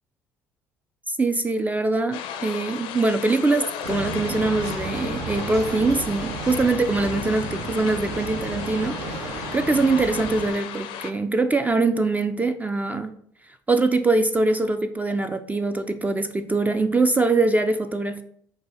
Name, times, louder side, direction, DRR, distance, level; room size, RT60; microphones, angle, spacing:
voice 1, 1.1-13.2 13.7-18.2, right 3 dB, 15° right, 9 dB, 0.3 m, -23 dB
sound 1, 2.1-11.1, left 9 dB, 65° left, 0.4 m, -36 dB
sound 2, 3.8-10.5, right 2 dB, 75° right, 0.7 m, -32 dB
4.7 x 2.3 x 4.5 m, 0.67 s
hypercardioid pair, 55°, 10 cm